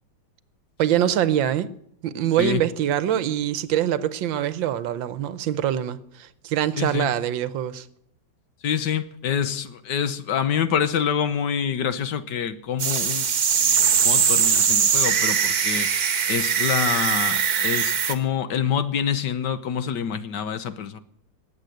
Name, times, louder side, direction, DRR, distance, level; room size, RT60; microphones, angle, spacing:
voice 1, 0.8-1.7 2.0-7.9, right 11 dB, 75° right, 1.5 m, -24 dB
voice 2, 6.8-7.1 8.6-13.3 13.6-16.0 16.3-21.0, left 8 dB, 65° left, 1.5 m, -26 dB
sound 1, 12.8-18.1, right 7 dB, 55° right, 1.7 m, -21 dB
20.0 x 8.1 x 7.8 m
omnidirectional pair, 2.1 m